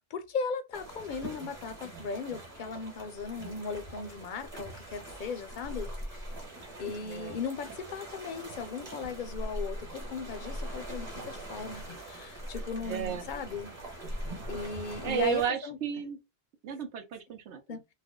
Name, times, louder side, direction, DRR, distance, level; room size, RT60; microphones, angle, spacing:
voice 1, 0.0-6.4 6.8-13.7 14.5-15.8 17.7-17.8, left 5 dB, 60° left, 0.6 m, -37 dB
sound 1, 0.7-15.5, right 1 dB, 35° right, 1.2 m, -42 dB
voice 2, 7.0-7.4 12.8-13.2 15.0-16.2 16.6-17.8, right 9 dB, 85° right, 1.0 m, -33 dB
2.5 x 2.1 x 3.6 m
omnidirectional pair, 1.1 m